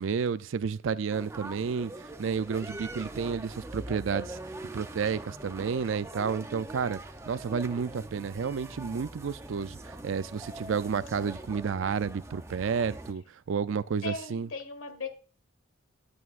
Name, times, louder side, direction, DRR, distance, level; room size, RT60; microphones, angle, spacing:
voice 1, 0.0-4.4 4.7-7.0 7.3-14.5, right 6 dB, 70° right, 0.4 m, -31 dB
sound 1, 1.1-13.1, right 1 dB, 15° right, 0.5 m, -43 dB
voice 2, 14.0-15.1, left 3 dB, 80° left, 1.6 m, -37 dB
11.0 x 8.5 x 2.5 m
head